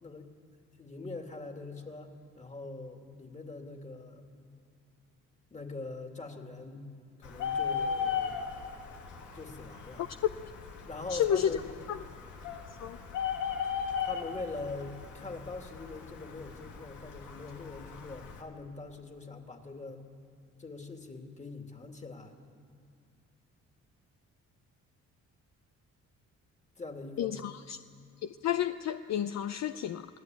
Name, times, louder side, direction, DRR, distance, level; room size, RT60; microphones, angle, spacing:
voice 1, 0.0-0.3 0.8-4.2 5.5-6.9 7.2-8.4 9.3-10.1 10.8-11.7 14.0-20.0 20.6-22.3 26.8-27.3, left 3 dB, 25° left, 3 dB, 2.8 m, -43 dB
Bird, 7.2-18.4, left 7 dB, 80° left, 2.5 m, -37 dB
voice 2, 11.1-11.5 11.9-12.0 12.8-13.0 27.2-27.8 28.2-30.1, left 10 dB, 60° left, 10 dB, 0.7 m, -30 dB
25.0 x 18.0 x 9.3 m, 2.3 s
cardioid pair, 90°, 30 cm